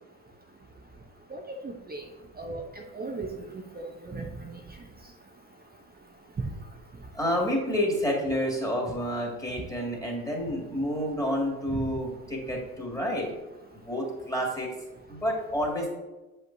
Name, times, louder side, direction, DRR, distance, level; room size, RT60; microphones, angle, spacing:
voice 1, 1.3-2.0 2.4-2.6 2.9-3.3 3.7-4.5 11.7-11.8, right 3 dB, 20° right, 2 dB, 0.9 m, -36 dB
voice 2, 7.1-13.3 13.9-14.7 15.1-15.9, equal, 10° left, -2 dB, 2.2 m, -29 dB
7.6 x 5.4 x 2.7 m, 1.1 s
hypercardioid pair, 65°, 45 cm